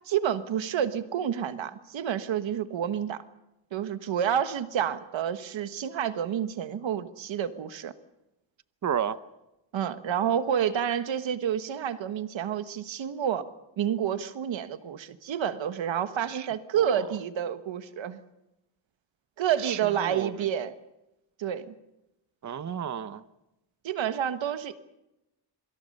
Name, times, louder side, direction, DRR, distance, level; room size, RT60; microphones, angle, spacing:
voice 1, 0.1-3.2 3.7-7.9 9.7-13.5 13.8-18.2 19.4-20.7 21.4-21.7 23.8-24.8, right 9 dB, 90° right, 1.5 m, -29 dB
voice 2, 8.8-9.2 16.3-16.5 16.7-17.0 19.6-19.8 20.0-20.3 22.4-23.2, right 8 dB, 40° right, 0.9 m, -31 dB
27.0 x 24.5 x 5.5 m
wide cardioid pair, 130°, 44 cm